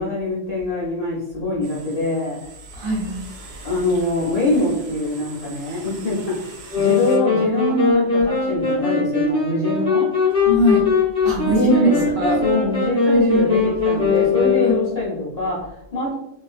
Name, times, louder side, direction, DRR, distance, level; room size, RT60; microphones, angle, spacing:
voice 1, 0.0-2.4 3.6-6.4 6.7-10.1 11.6-12.0 12.4-16.1, left 2 dB, 50° left, -7 dB, 0.4 m, -24 dB
sound 1, 1.6-7.2, right 3 dB, 70° right, 0.9 m, -42 dB
voice 2, 2.7-3.2 3.5-3.7 10.4-10.9 11.2-12.4 13.1-14.8, right 1 dB, 85° right, -3 dB, 1.4 m, -22 dB
sound 2, 6.7-15.2, left 5 dB, 5° left, 0.6 m, -20 dB
2.4 x 2.2 x 2.4 m, 0.86 s
omnidirectional pair, 1.3 m